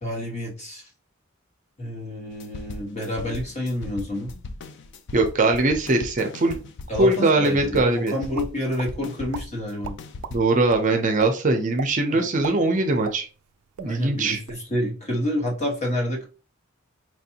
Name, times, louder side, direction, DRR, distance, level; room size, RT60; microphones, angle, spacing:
voice 1, 0.0-0.9 1.8-4.4 6.9-9.9 12.1-12.2 13.8-16.3, left 1 dB, 30° left, 0 dB, 1.2 m, -28 dB
sound 1, 2.3-10.4, left 3 dB, 55° left, 0.4 m, -38 dB
voice 2, 5.1-6.6 7.0-8.1 10.3-13.3 13.8-14.4, right 2 dB, 35° right, 4 dB, 0.5 m, -21 dB
sound 2, 8.3-8.9 9.3-9.4 9.8-10.3 10.7-10.8 11.2-11.3 11.8-11.9 12.3-13.5 13.8-13.9 14.3-14.6, right 6 dB, 90° right, 0.3 m, -34 dB
4.5 x 2.6 x 2.7 m, 0.35 s
head